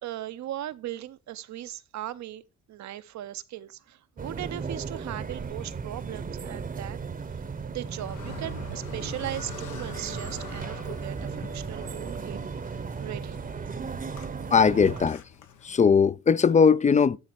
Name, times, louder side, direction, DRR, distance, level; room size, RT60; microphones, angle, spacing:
voice 1, 0.0-2.4 2.7-12.4 13.0-13.4, right 13 dB, 65° right, 0.7 m, -38 dB
sound 1, 4.2-15.1, right 5 dB, 30° right, 0.8 m, -36 dB
Car, 7.8-16.1, left 8 dB, 90° left, 1.2 m, -46 dB
voice 2, 14.5-15.2 15.6-17.2, left 6 dB, 25° left, 0.4 m, -19 dB
12.0 x 4.1 x 4.5 m
cardioid pair, 90°, 30 cm